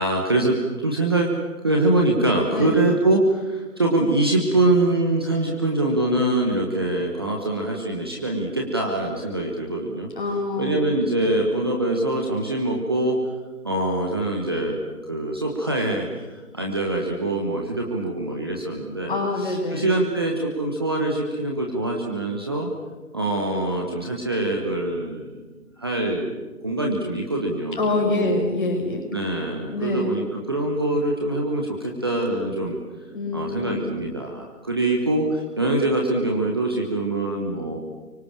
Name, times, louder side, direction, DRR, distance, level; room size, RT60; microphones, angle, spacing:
voice 1, 0.0-1.3 1.6-10.1 10.6-13.2 13.6-14.8 15.1-22.7 23.1-25.5 25.8-26.3 26.6-28.4 29.1-32.8 33.3-37.8, right 2 dB, 15° right, 0 dB, 1.3 m, -24 dB
voice 2, 10.2-10.8 19.1-19.9 27.8-29.0 29.7-30.2 33.1-33.8, left 2 dB, 35° left, 2 dB, 6.0 m, -25 dB
30.0 x 24.5 x 7.4 m, 1.3 s
figure-of-eight pair, 165°, 46 cm